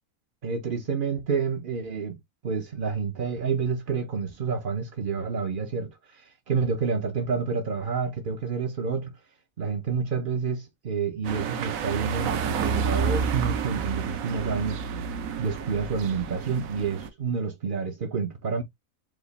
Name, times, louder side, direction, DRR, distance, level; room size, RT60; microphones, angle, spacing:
voice 1, 0.4-2.2 2.4-9.2 9.6-14.8 15.4-18.6, right 5 dB, 45° right, 0.7 m, -29 dB
sound 1, 11.2-17.1, right 6 dB, 65° right, 1.1 m, -30 dB
5.0 x 2.4 x 3.9 m
omnidirectional pair, 1.6 m